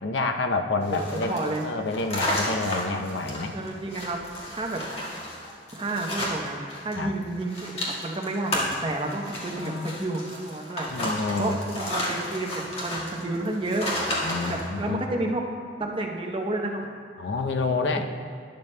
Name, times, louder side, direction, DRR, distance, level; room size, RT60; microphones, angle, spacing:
voice 1, 0.0-3.5 6.9-7.1 9.5-9.9 10.9-11.6 14.2-15.0 17.2-18.0, left 3 dB, 80° left, 5 dB, 0.7 m, -28 dB
sound 1, 0.8-7.0 7.2-14.7, left 1 dB, 35° left, 1.7 m, -32 dB
voice 2, 0.9-1.7 3.5-4.2 4.5-4.8 5.8-10.9 11.4-13.9 14.5-15.4 15.8-16.8 17.9-18.0, right 2 dB, 30° right, 1 dB, 0.8 m, -30 dB
12.0 x 11.0 x 2.2 m, 2.3 s
head